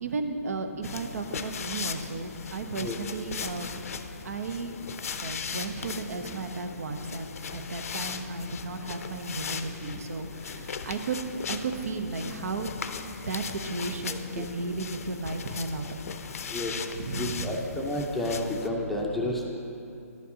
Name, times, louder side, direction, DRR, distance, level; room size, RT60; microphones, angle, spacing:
voice 1, 0.0-3.7 4.2-4.7 5.2-11.2 11.5-12.8 13.3-16.1 16.9-17.6, right 3 dB, 65° right, 6 dB, 0.7 m, -34 dB
sound 1, 0.8-18.7, left 6 dB, 65° left, 0.5 m, -38 dB
voice 2, 14.1-14.4 16.5-16.7 17.2-19.4, left 1 dB, 5° left, -2 dB, 0.6 m, -31 dB
11.0 x 8.3 x 2.8 m, 2.7 s
hypercardioid pair, 150°, 9 cm